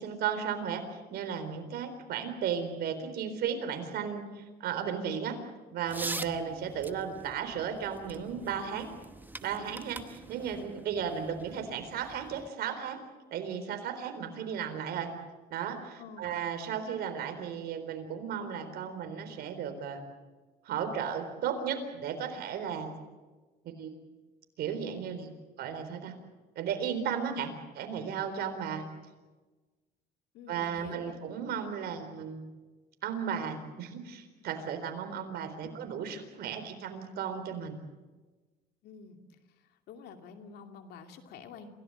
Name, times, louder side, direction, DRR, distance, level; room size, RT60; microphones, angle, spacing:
voice 1, 0.0-5.4 5.7-8.9 9.4-13.0 13.3-15.1 15.5-20.0 20.6-22.9 23.8-23.9 24.6-25.3 25.6-26.1 26.6-28.8 30.5-32.4 33.0-37.8, right 7 dB, 70° right, 7 dB, 4.1 m, -35 dB
sound 1, 5.9-12.5, right 2 dB, 10° right, 1.0 m, -44 dB
voice 2, 16.0-16.4 30.3-31.2 35.6-35.8 38.8-39.2 39.5-41.7, left 5 dB, 75° left, 5 dB, 2.7 m, -49 dB
27.0 x 17.5 x 8.0 m, 1.2 s
cardioid pair, 110°, 17 cm